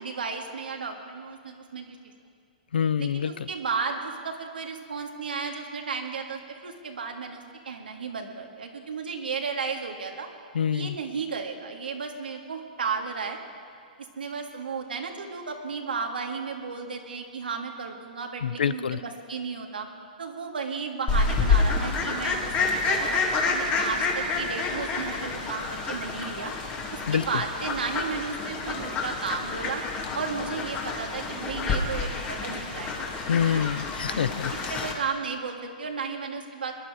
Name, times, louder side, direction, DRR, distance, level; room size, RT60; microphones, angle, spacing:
voice 1, 0.0-2.0 3.0-10.3 10.7-13.4 14.2-19.9 20.2-26.5 26.9-29.8 30.1-33.1 34.1-34.3 34.7-36.7, right 5 dB, 90° right, 3 dB, 1.9 m, -34 dB
voice 2, 2.7-3.5 10.5-11.0 18.4-19.0 27.1-27.4 33.3-34.9, left 8 dB, 85° left, 17 dB, 0.5 m, -26 dB
Fowl, 21.1-34.9, left 4 dB, 30° left, 2.2 m, -28 dB
21.5 x 11.5 x 4.8 m, 2.2 s
hypercardioid pair, 130°, 5 cm